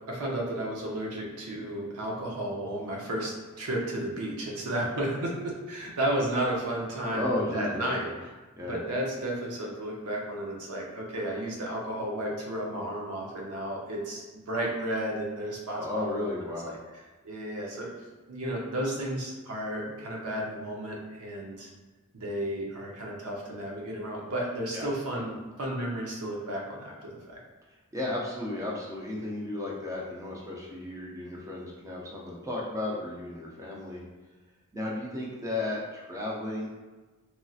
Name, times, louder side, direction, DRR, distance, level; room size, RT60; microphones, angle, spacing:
voice 1, 0.1-8.1 8.7-16.8 17.2-17.9 18.3-21.7 22.1-27.4, right 1 dB, 80° right, -2 dB, 0.7 m, -33 dB
voice 2, 7.1-8.1 8.5-8.8 15.8-16.7 24.7-25.2 27.9-34.0 34.7-36.7, left 2 dB, 15° right, -4 dB, 0.4 m, -34 dB
3.1 x 2.6 x 2.3 m, 1.3 s
head